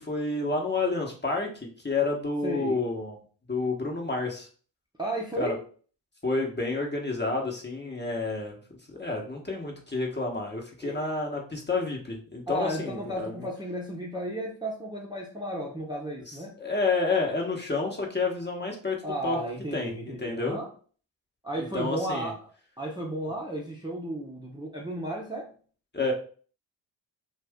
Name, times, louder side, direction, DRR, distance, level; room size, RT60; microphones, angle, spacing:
voice 1, 0.0-3.2 3.5-4.5 5.4-5.5 6.2-8.6 8.9-13.4 16.3-19.4 19.7-20.6 21.6-22.3 25.9-26.1, left 3 dB, 20° left, 0 dB, 1.1 m, -30 dB
voice 2, 2.4-2.8 5.0-5.6 10.8-11.0 12.5-16.5 19.0-20.7 21.4-22.5 22.8-25.6, right 1 dB, 10° right, -3 dB, 0.8 m, -34 dB
2.6 x 2.6 x 3.5 m, 0.41 s
supercardioid pair, 50°, 47 cm